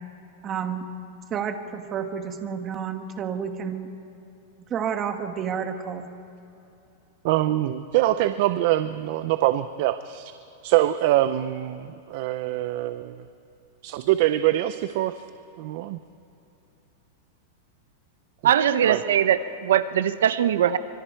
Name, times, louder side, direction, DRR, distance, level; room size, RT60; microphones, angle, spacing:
voice 1, 0.4-0.9 1.3-3.9 4.7-6.1, right 7 dB, 20° right, 7 dB, 1.2 m, -30 dB
voice 2, 7.2-10.3 10.6-13.3 13.8-15.2 15.6-16.0 18.8-19.0, right 14 dB, 45° right, 12 dB, 0.5 m, -24 dB
voice 3, 18.4-20.8, right 10 dB, 90° right, 13 dB, 0.8 m, -21 dB
25.5 x 24.0 x 4.6 m, 2.9 s
supercardioid pair, 165°, 0 cm